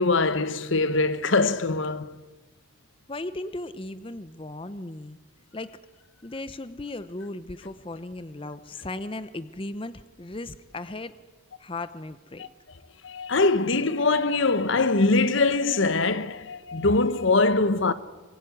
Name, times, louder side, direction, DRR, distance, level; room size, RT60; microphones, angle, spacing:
voice 1, 0.0-2.2 13.0-17.9, left 3 dB, 70° left, 1.1 m, -22 dB
voice 2, 3.1-5.2 5.5-5.8 6.2-11.1 11.6-12.5, left 2 dB, 25° left, 0.7 m, -36 dB
24.5 x 22.5 x 9.7 m
head